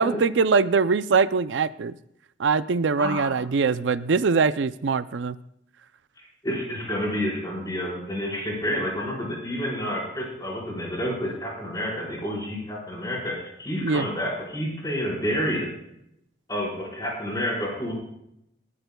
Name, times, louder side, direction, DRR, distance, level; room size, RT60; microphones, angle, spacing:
voice 1, 0.0-2.0 2.4-5.4 13.8-14.1, right 4 dB, 80° right, 14 dB, 0.5 m, -22 dB
voice 2, 6.2-15.7 16.5-17.9, equal, 20° left, -3 dB, 4.7 m, -29 dB
26.5 x 12.5 x 2.3 m, 0.78 s
head